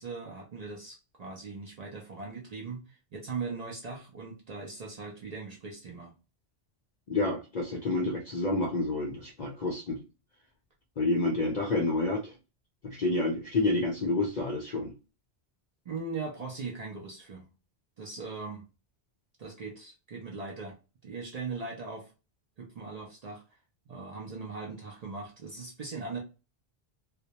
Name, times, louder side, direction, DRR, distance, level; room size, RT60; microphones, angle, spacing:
voice 1, 0.0-6.1 15.9-17.5 18.0-18.7 19.4-20.8 21.0-22.1 22.6-23.4 23.9-26.2, right 4 dB, 55° right, -1 dB, 0.4 m, -39 dB
voice 2, 7.1-10.0 11.0-12.3 12.8-14.9, left 2 dB, 55° left, -1 dB, 0.5 m, -29 dB
2.2 x 2.1 x 2.8 m, 0.30 s
omnidirectional pair, 1.1 m